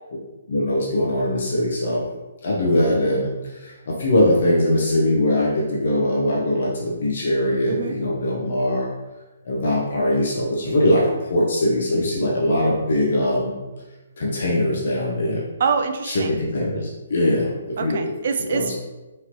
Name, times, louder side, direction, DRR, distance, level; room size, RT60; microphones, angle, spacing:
voice 1, 0.5-2.1 2.4-8.9 9.4-13.6 14.2-15.4 16.0-18.0 18.4-18.7, left 1 dB, 45° left, -3 dB, 0.8 m, -21 dB
voice 2, 15.6-16.3 17.8-18.7, right 5 dB, 40° right, 7 dB, 0.4 m, -25 dB
4.2 x 3.1 x 3.0 m, 1.1 s
hypercardioid pair, 175°, 0 cm